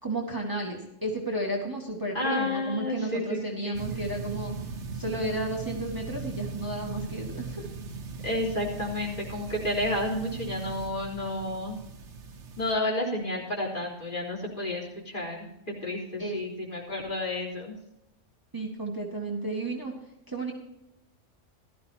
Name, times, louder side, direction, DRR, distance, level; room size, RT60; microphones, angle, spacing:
voice 1, 0.0-4.6 4.9-7.7 16.2-16.4 18.5-20.0 20.3-20.5, right 2 dB, 15° right, -1 dB, 2.0 m, -32 dB
voice 2, 2.1-3.8 8.2-11.8 12.6-17.8, left 1 dB, 40° left, -3 dB, 3.9 m, -31 dB
sound 1, 3.7-12.7, right 4 dB, 70° right, 1.3 m, -39 dB
17.0 x 13.5 x 2.9 m, 0.85 s
omnidirectional pair, 1.3 m